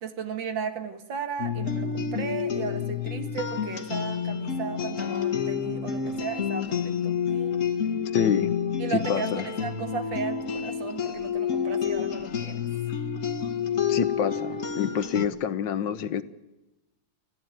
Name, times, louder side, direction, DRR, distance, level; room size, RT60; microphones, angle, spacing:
voice 1, 0.0-7.6 8.8-12.6, right 6 dB, 70° right, 8 dB, 2.5 m, -35 dB
sound 1, 1.4-15.3, left 7 dB, 45° left, 1.5 m, -29 dB
voice 2, 8.1-8.5 8.9-9.4 13.9-16.2, left 7 dB, 70° left, 13 dB, 1.6 m, -27 dB
28.5 x 14.5 x 9.1 m, 1.0 s
omnidirectional pair, 2.1 m